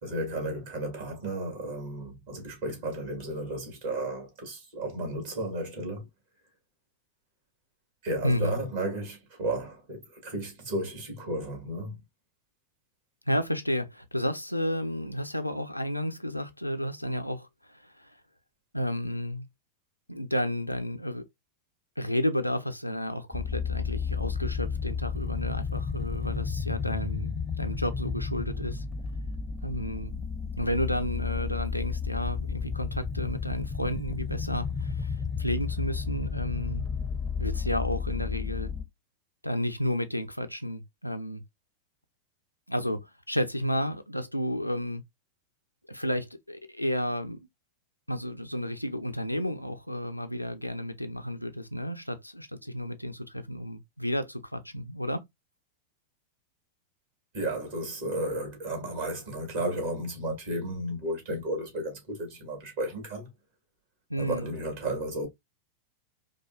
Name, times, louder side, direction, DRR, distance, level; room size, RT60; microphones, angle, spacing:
voice 1, 0.0-6.1 8.0-12.0 57.3-63.3 64.2-65.3, right 1 dB, 55° right, 2.1 m, -33 dB
voice 2, 8.2-8.6 13.3-18.1 18.7-19.5 20.1-21.2 22.0-28.8 29.6-30.1 30.6-36.8 37.4-38.7 39.4-41.4 42.7-45.0 45.9-47.4 48.1-55.3 64.1-64.5, equal, 90° left, 0.4 m, -32 dB
sound 1, 23.3-38.9, left 6 dB, 10° left, 0.6 m, -32 dB
4.8 x 2.2 x 2.3 m
figure-of-eight pair, 90°, 0 cm